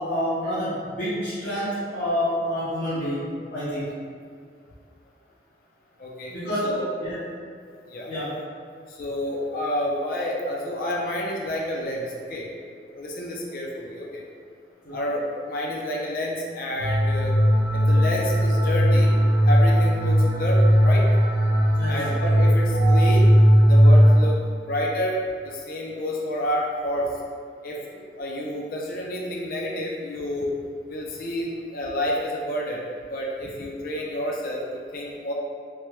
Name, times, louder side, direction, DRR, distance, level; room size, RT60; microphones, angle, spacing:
voice 1, 0.0-3.2 3.5-3.9 6.3-6.7 7.0-7.1 8.1-8.3 14.8-15.0 21.8-22.0, equal, 75° left, -13 dB, 0.8 m, -28 dB
voice 2, 6.0-6.3 6.6-6.9 7.9-8.1 8.9-12.5 12.9-14.2 14.9-17.4 17.7-19.1 19.4-21.0 21.9-23.3 23.7-24.4 24.7-27.1 27.6-30.5 30.9-34.6 34.9-35.3, equal, 50° left, -2 dB, 0.4 m, -29 dB
sound 1, 16.8-24.2, equal, 60° right, 0.5 m, -18 dB
3.2 x 2.2 x 2.9 m, 2.2 s
head